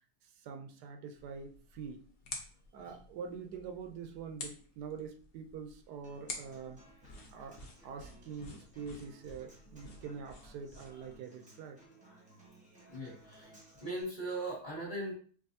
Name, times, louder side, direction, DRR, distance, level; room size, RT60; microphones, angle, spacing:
voice 1, 0.2-2.0 2.7-6.8 7.3-11.8, right 6 dB, 80° right, 5 dB, 1.2 m, -45 dB
sound 1, 1.1-11.2, left 2 dB, 50° left, 0.7 m, -50 dB
Human voice / Acoustic guitar, 6.0-14.0, right 1 dB, 5° right, 0.8 m, -59 dB
voice 2, 12.9-13.5 13.8-15.1, right 1 dB, 25° left, -5 dB, 1.5 m, -39 dB
4.8 x 2.6 x 2.6 m, 0.43 s
omnidirectional pair, 1.7 m